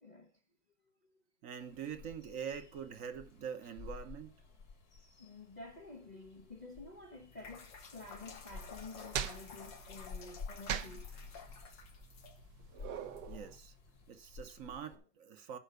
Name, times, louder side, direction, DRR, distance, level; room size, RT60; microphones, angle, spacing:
voice 1, 0.0-0.3 5.2-11.1 14.9-15.0, left 3 dB, 35° left, 0.8 m, -50 dB
voice 2, 1.4-4.4 13.3-13.7 14.1-15.6, right 7 dB, 50° right, 1.3 m, -44 dB
sound 1, 1.6-15.0, left 5 dB, 60° left, 2.2 m, -53 dB
sound 2, 7.1-14.1, left 5 dB, 90° left, 2.2 m, -53 dB
sound 3, 8.5-13.6, right 9 dB, 75° right, 1.4 m, -43 dB
10.5 x 5.5 x 6.6 m
omnidirectional pair, 1.9 m